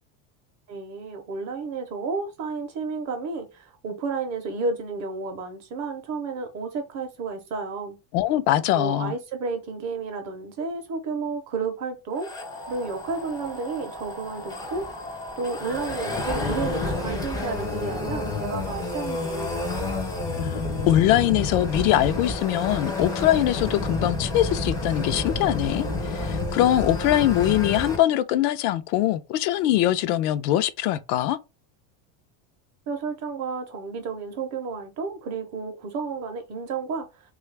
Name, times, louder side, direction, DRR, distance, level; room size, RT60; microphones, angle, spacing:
voice 1, 0.7-8.0 8.7-12.3 12.7-14.9 15.4-19.7 32.9-37.1, right 4 dB, 35° right, 0.6 m, -31 dB
voice 2, 8.1-9.1 20.4-31.4, left 13 dB, 70° left, 0.5 m, -22 dB
sound 1, 12.2-28.0, left 2 dB, 10° left, 0.4 m, -30 dB
3.1 x 2.4 x 3.2 m
supercardioid pair, 150°, 47 cm